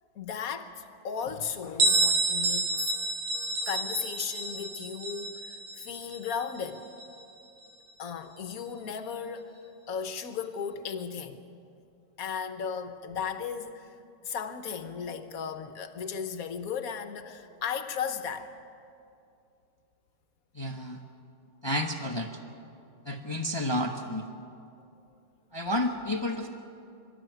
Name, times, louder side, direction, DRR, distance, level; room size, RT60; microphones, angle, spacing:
voice 1, 0.1-2.9 3.7-6.9 8.0-9.6 9.9-11.6 12.2-13.9 14.2-18.5, left 7 dB, 55° left, 1.3 m, -36 dB
Bell, 1.8-7.3, right 3 dB, 90° right, 2.1 m, -29 dB
voice 2, 20.5-21.0 21.6-22.3 23.0-24.3 25.5-26.5, left 1 dB, 25° left, 0.6 m, -30 dB
24.0 x 13.0 x 9.2 m
omnidirectional pair, 2.1 m